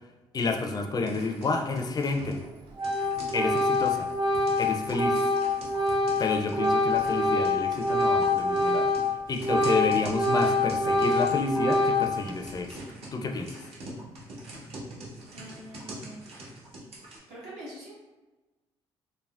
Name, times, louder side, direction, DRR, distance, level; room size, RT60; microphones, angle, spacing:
voice 1, 0.3-2.4 3.3-4.1 4.6-5.3 6.2-8.9 9.3-12.8 13.1-13.5, left 3 dB, 35° left, 3 dB, 0.4 m, -29 dB
sound 1, 0.9-17.2, right 1 dB, 65° right, 0.8 m, -44 dB
Organ, 2.2-2.5 2.8-9.1 9.4-12.3, left 2 dB, 40° right, 0.4 m, -25 dB
voice 2, 15.3-16.2 17.3-17.9, right 1 dB, 80° right, -7 dB, 1.2 m, -44 dB
3.4 x 2.0 x 2.4 m, 1.2 s
supercardioid pair, 70°, 11 cm